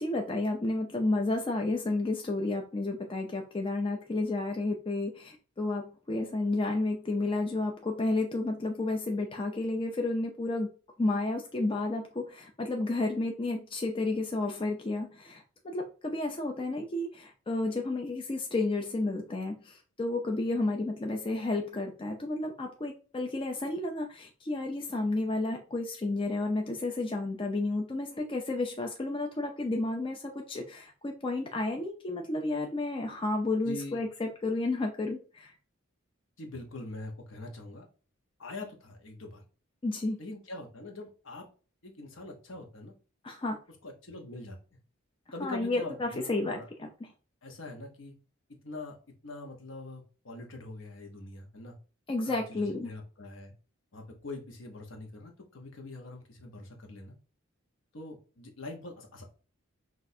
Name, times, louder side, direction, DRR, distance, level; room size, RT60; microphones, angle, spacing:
voice 1, 0.0-10.7 11.0-35.5 39.8-40.2 43.2-43.6 45.4-46.9 52.1-52.9, left 2 dB, 25° left, 3 dB, 0.4 m, -31 dB
voice 2, 33.6-34.0 36.4-37.8 38.4-39.4 40.2-41.4 41.8-42.9 43.8-44.6 45.3-46.7 47.4-48.1 48.6-49.0 49.2-51.7 52.3-53.5 53.9-57.1 57.9-59.3, left 2 dB, 65° left, 2 dB, 1.0 m, -43 dB
6.1 x 2.5 x 2.7 m, 0.37 s
head